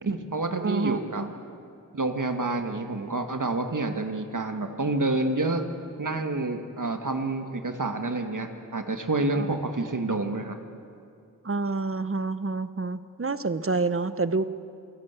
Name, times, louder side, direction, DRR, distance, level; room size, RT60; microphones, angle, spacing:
voice 1, 0.0-1.2 1.9-5.6 6.0-10.6, right 2 dB, 70° right, 6 dB, 1.9 m, -28 dB
voice 2, 0.6-1.3 9.3-9.5 11.4-14.5, right 3 dB, 40° right, 13 dB, 1.0 m, -28 dB
27.5 x 16.5 x 8.3 m, 2.5 s
wide cardioid pair, 45°, 32 cm